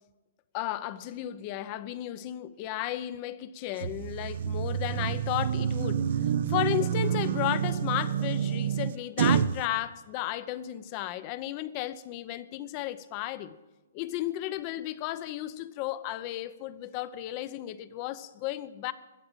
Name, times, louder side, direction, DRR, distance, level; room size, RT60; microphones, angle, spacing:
voice 1, 0.5-6.1 6.5-13.6 13.9-18.9, left 14 dB, 35° left, 15 dB, 0.7 m, -34 dB
sound 1, 3.8-9.6, right 8 dB, 60° right, 0.6 m, -28 dB
14.5 x 8.6 x 8.9 m, 1.1 s
hypercardioid pair, 140°, 0 cm